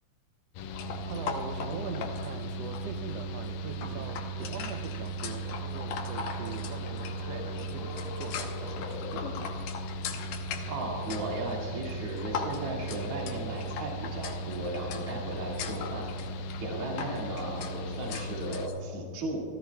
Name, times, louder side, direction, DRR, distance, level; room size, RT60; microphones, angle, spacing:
Mechanical fan, 0.6-18.7, right 1 dB, 90° left, 2.6 m, -37 dB
sound 1, 0.7-18.8, left 6 dB, 70° left, 2.4 m, -41 dB
voice 1, 1.1-9.3, right 7 dB, 80° right, 8 dB, 1.4 m, -42 dB
sound 2, 5.4-9.3, left 4 dB, 55° left, 2.3 m, -44 dB
voice 2, 10.7-16.1 16.6-19.4, right 1 dB, 45° right, -2 dB, 3.1 m, -36 dB
28.5 x 15.0 x 2.3 m, 2.4 s
omnidirectional pair, 3.9 m